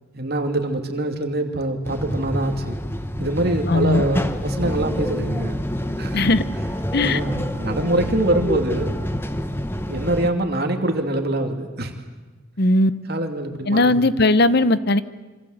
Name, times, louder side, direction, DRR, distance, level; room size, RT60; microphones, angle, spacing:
voice 1, 0.1-2.8 3.2-5.6 6.0-6.3 7.0-9.0 9.9-11.9 13.1-14.2, right 1 dB, 45° right, 4 dB, 2.8 m, -24 dB
sound 1, 1.8-10.3, equal, 10° left, 1.0 m, -27 dB
voice 2, 3.7-4.0 6.1-6.4 6.9-7.2 12.6-12.9 13.7-15.0, left 2 dB, 50° left, 15 dB, 0.9 m, -18 dB
27.0 x 25.5 x 8.0 m, 1.3 s
head